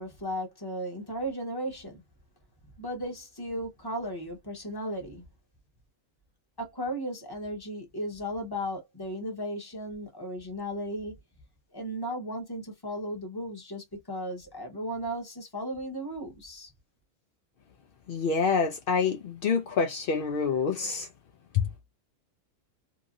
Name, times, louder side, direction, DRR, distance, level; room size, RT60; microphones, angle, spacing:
voice 1, 0.0-2.0 2.8-5.2 6.6-11.2 11.7-16.7, equal, 15° left, 1.0 m, -35 dB
voice 2, 18.1-21.1 21.5-21.7, left 5 dB, 75° left, 0.5 m, -27 dB
2.9 x 2.6 x 2.5 m
omnidirectional pair, 1.5 m